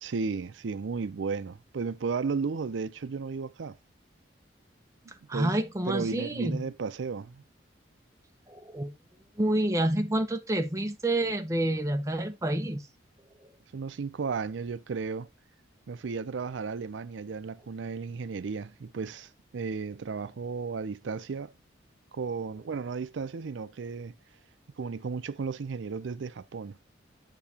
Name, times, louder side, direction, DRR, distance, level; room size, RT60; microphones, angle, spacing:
voice 1, 0.0-3.8 5.3-5.5 5.9-7.4 13.7-15.3 15.9-21.5 22.1-24.1 24.8-26.8, right 5 dB, 80° right, 0.4 m, -34 dB
voice 2, 5.3-6.6 8.5-8.9 9.4-12.9, right 1 dB, 15° right, 0.6 m, -28 dB
8.1 x 6.8 x 2.7 m
head